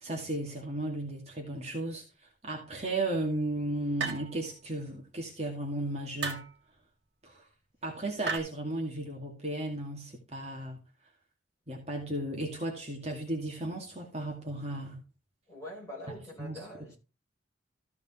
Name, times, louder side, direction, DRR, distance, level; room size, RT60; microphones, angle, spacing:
voice 1, 0.0-2.0 2.4-6.5 7.2-7.4 7.8-10.8 11.7-15.0 16.4-16.6, right 1 dB, 35° right, 2.2 m, -35 dB
sound 1, 4.0-4.5 6.2-6.6 8.2-8.4, right 5 dB, 60° right, 2.5 m, -34 dB
voice 2, 15.5-17.0, equal, 15° left, 5.8 m, -44 dB
14.5 x 5.2 x 4.3 m
head